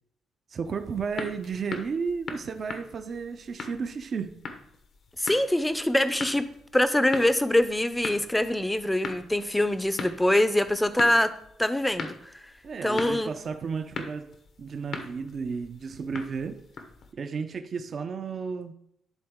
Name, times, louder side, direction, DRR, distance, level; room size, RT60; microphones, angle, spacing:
voice 1, 0.5-4.4 12.6-14.3 14.6-16.6 17.1-18.7, right 5 dB, 50° right, 0.5 m, -33 dB
sound 1, 0.6-17.1, left 4 dB, 60° left, 0.9 m, -41 dB
voice 2, 5.2-6.5 6.7-11.3 11.6-12.3 12.8-13.3, left 1 dB, 10° left, 0.6 m, -24 dB
10.5 x 3.8 x 3.6 m
cardioid pair, 90°, 0 cm